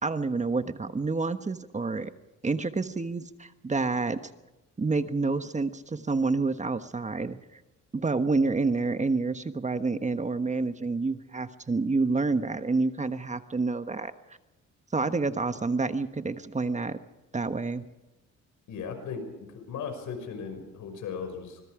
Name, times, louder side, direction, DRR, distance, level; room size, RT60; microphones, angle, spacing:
voice 1, 0.0-2.1 2.4-4.3 4.8-7.6 7.9-14.1 14.9-17.0 17.3-17.8, right 3 dB, 25° right, 10 dB, 1.3 m, -28 dB
voice 2, 18.7-21.6, left 6 dB, 80° left, 6 dB, 5.9 m, -37 dB
25.5 x 21.5 x 5.0 m, 1.0 s
cardioid pair, 90°, 30 cm